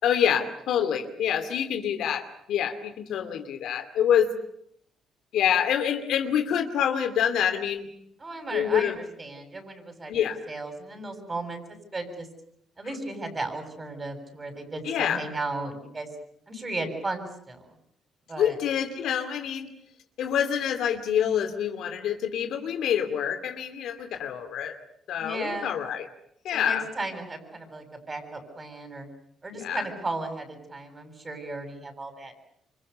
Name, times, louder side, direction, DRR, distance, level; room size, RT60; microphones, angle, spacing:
voice 1, 0.0-4.3 5.3-7.9 8.5-9.0 10.1-10.4 14.8-15.3 18.4-19.7 20.2-24.8 25.1-26.1 26.4-26.9 29.5-29.8, left 9 dB, 80° left, 8 dB, 2.5 m, -26 dB
voice 2, 8.2-8.9 9.2-12.3 12.8-16.1 16.5-17.6 18.3-18.6 25.2-25.7 26.5-29.1 29.4-32.3, right 2 dB, 25° right, 6 dB, 7.4 m, -35 dB
27.5 x 25.0 x 6.9 m, 0.70 s
cardioid pair, 90°, 0 cm